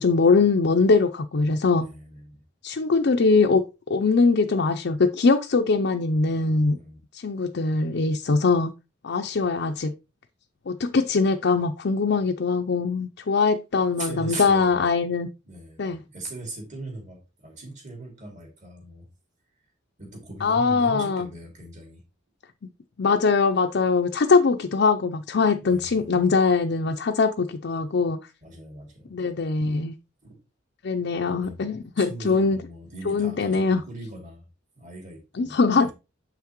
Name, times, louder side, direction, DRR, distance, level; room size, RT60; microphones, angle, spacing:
voice 1, 0.0-1.9 2.6-3.6 3.9-6.8 7.1-8.7 9.0-9.9 10.7-15.3 15.8-16.0 20.4-21.2 23.0-28.2 29.1-29.9 30.8-32.6 33.1-33.8 35.4-35.9, left 4 dB, 55° left, 0.5 m, -22 dB
voice 2, 1.8-2.4 6.7-7.0 14.0-14.9 15.4-19.1 20.0-22.0 25.6-26.3 28.4-29.1 30.2-30.4 31.4-31.6 32.0-34.4 34.8-35.9, right 2 dB, 35° right, 2.5 m, -39 dB
7.3 x 5.7 x 3.0 m
head